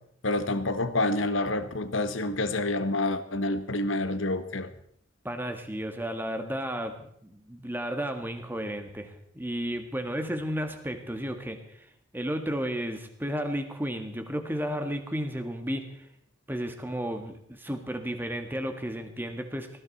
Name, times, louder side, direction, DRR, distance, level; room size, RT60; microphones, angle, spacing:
voice 1, 0.2-4.7, left 2 dB, 70° left, 11 dB, 1.3 m, -28 dB
voice 2, 5.2-11.6 12.1-16.1 16.5-19.7, equal, 10° right, 6 dB, 1.7 m, -33 dB
18.5 x 15.0 x 4.2 m, 0.67 s
head